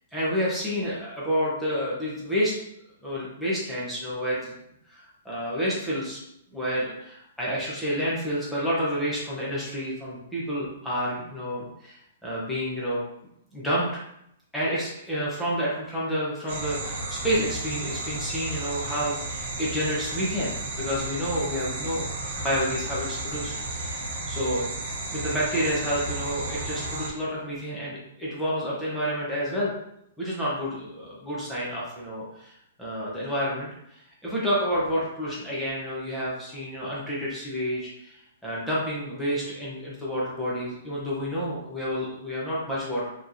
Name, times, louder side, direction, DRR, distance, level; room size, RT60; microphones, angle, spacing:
voice 1, 0.1-2.6 3.0-4.5 4.9-6.2 6.5-13.0 13.5-14.0 14.5-24.6 25.1-29.7 30.2-43.1, equal, ahead, -8 dB, 0.8 m, -29 dB
sound 1, 16.5-27.1, right 2 dB, 45° right, 0.8 m, -33 dB
5.1 x 2.9 x 2.6 m, 0.77 s
hypercardioid pair, 170°, 0 cm